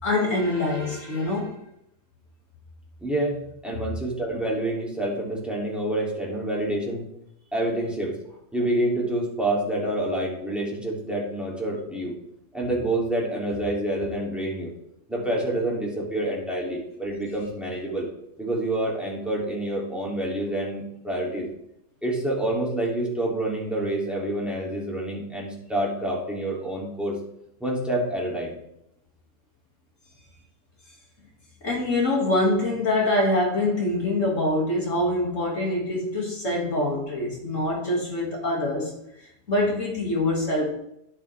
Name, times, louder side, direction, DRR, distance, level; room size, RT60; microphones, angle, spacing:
voice 1, 0.0-1.5 31.6-38.9 39.5-40.7, left 1 dB, 60° left, -2 dB, 2.5 m, -24 dB
voice 2, 3.0-7.0 7.5-8.1 8.5-12.1 12.5-14.7 15.1-18.1 18.4-21.5 22.0-27.2 27.6-28.6, right 1 dB, ahead, -4 dB, 2.6 m, -27 dB
10.5 x 7.7 x 3.4 m, 0.78 s
omnidirectional pair, 1.5 m